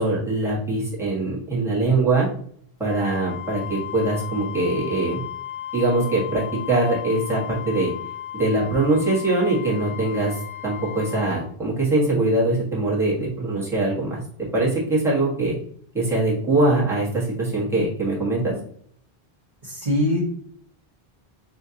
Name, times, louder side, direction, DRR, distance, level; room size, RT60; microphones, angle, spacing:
voice 1, 0.0-2.3 2.8-5.2 5.7-7.9 8.3-14.2 14.5-15.6 15.9-18.5, right 2 dB, 5° right, -7 dB, 1.3 m, -22 dB
Wind instrument woodwind instrument, 2.9-11.4, left 11 dB, 75° left, 0.8 m, -35 dB
voice 2, 19.6-20.2, left 1 dB, 40° right, -6 dB, 1.2 m, -22 dB
5.5 x 2.5 x 2.8 m, 0.62 s
omnidirectional pair, 1.0 m